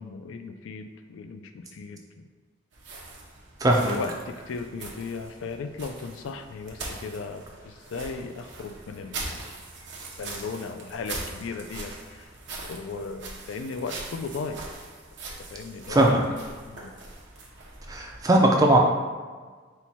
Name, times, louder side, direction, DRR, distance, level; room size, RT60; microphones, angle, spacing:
voice 1, 0.0-2.3 3.8-9.5 10.2-12.3 12.7-14.7 15.5-16.1 16.6-16.9, left 4 dB, 80° left, 7 dB, 0.3 m, -36 dB
sound 1, 2.7-18.2, right 3 dB, 65° right, 0.7 m, -41 dB
voice 2, 3.6-4.0 15.9-16.2 17.9-18.8, right 1 dB, 20° right, 0 dB, 0.4 m, -19 dB
4.4 x 2.2 x 4.1 m, 1.5 s
head